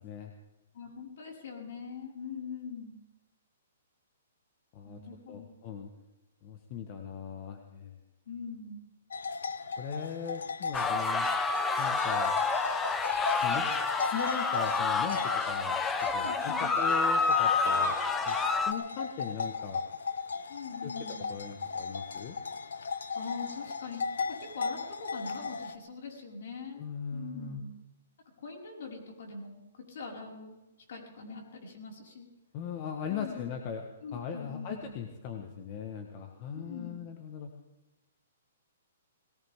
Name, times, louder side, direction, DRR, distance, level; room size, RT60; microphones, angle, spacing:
voice 1, 0.7-2.9 4.8-5.5 8.3-8.9 16.1-16.7 17.6-18.0 20.5-21.2 23.2-26.8 27.1-27.7 28.4-29.6 29.9-30.6 30.9-32.3 33.1-33.5 34.0-34.9 36.5-37.0, left 5 dB, 65° left, -1 dB, 5.5 m, -43 dB
voice 2, 5.3-5.9 6.4-8.0 9.8-11.3 11.8-12.3 13.4-13.7 14.1-15.8 16.1-18.0 18.3-18.4 18.7-19.8 20.8-20.9 21.3-22.4 26.7-27.6 32.5-33.8 34.1-37.5, left 7 dB, 35° left, 4 dB, 1.4 m, -39 dB
sound 1, 9.1-25.8, left 5 dB, 90° left, 1.2 m, -36 dB
sound 2, 10.7-18.7, left 4 dB, 10° left, 0.8 m, -29 dB
21.0 x 18.0 x 3.7 m, 1.0 s
hypercardioid pair, 155°, 0 cm